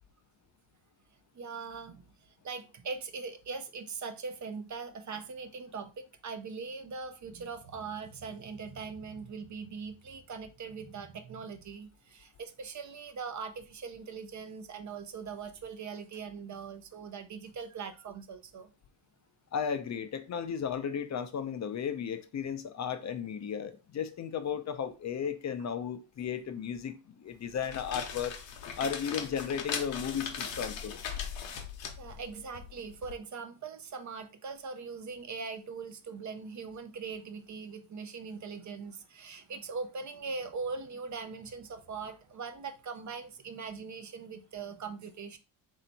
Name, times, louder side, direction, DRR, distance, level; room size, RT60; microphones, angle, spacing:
voice 1, 1.3-18.7 32.0-45.4, right 5 dB, 40° right, 0.6 m, -41 dB
voice 2, 19.5-28.4 28.8-31.0, left 7 dB, 35° left, 0.5 m, -35 dB
sound 1, 27.5-33.1, left 7 dB, 70° left, 0.9 m, -39 dB
3.3 x 2.8 x 4.0 m
cardioid pair, 90°, 47 cm